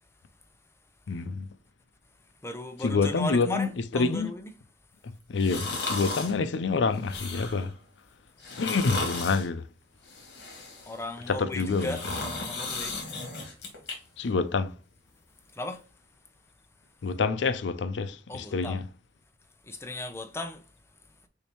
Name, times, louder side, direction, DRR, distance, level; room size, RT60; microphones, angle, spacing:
voice 1, 1.1-1.5 2.8-4.3 5.3-7.7 8.5-9.6 11.3-12.0 14.2-14.7 17.0-18.8, left 4 dB, 85° left, 0.5 m, -27 dB
voice 2, 2.4-4.5 10.8-13.0 13.6-13.7 15.5-15.9 18.3-18.8 19.6-20.7 21.1-21.2, left 2 dB, 15° left, 0.6 m, -36 dB
sound 1, 5.4-6.4 6.9-7.7 8.4-9.5 10.0-11.0 11.5-13.9 14.3-14.4, left 3 dB, 60° left, 2.0 m, -35 dB
6.3 x 2.7 x 3.0 m
head